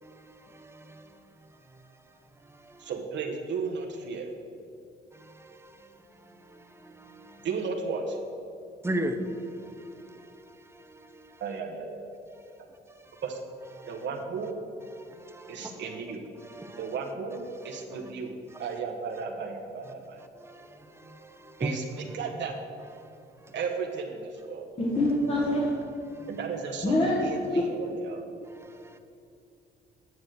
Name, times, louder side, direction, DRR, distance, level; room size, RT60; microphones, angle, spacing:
voice 1, 0.0-2.9 5.1-7.5 8.8-11.4 12.3-13.2 13.7-14.1 14.9-16.0 16.4-17.0 17.6-18.7 19.8-22.2 22.9-23.6 26.1-26.4 28.1-29.0, right 1 dB, 10° right, 0.9 m, -41 dB
voice 2, 2.8-4.3 7.4-8.2 11.4-12.1 13.2-13.4 13.9-14.6 15.5-16.2 16.8-18.3 18.6-20.2 21.6-21.9 22.1-22.6 23.5-24.7 26.3-28.2, right 5 dB, 65° right, 1.2 m, -34 dB
voice 3, 24.8-25.6 26.8-27.3, left 1 dB, 30° left, 1.6 m, -25 dB
9.6 x 6.1 x 6.6 m
cardioid pair, 90°, 20 cm